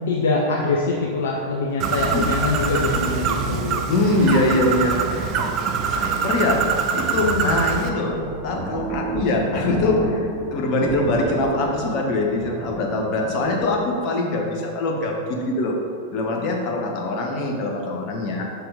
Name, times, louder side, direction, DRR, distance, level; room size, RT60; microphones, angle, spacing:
voice 1, 0.1-3.8 7.2-7.5, left 3 dB, 60° left, -2 dB, 0.6 m, -24 dB
Bird, 1.8-7.9, right 6 dB, 35° right, 0.5 m, -24 dB
voice 2, 3.9-5.0 5.4-5.5 5.9-6.6 6.9-8.2 8.4-15.8 16.1-18.4, left 2 dB, 40° left, 0 dB, 1.1 m, -23 dB
sound 1, 5.6-7.2 7.7-7.8 8.0-10.5 10.8-13.8, right 3 dB, ahead, 0.7 m, -31 dB
5.8 x 4.5 x 5.0 m, 2.5 s
figure-of-eight pair, 90°, 0 cm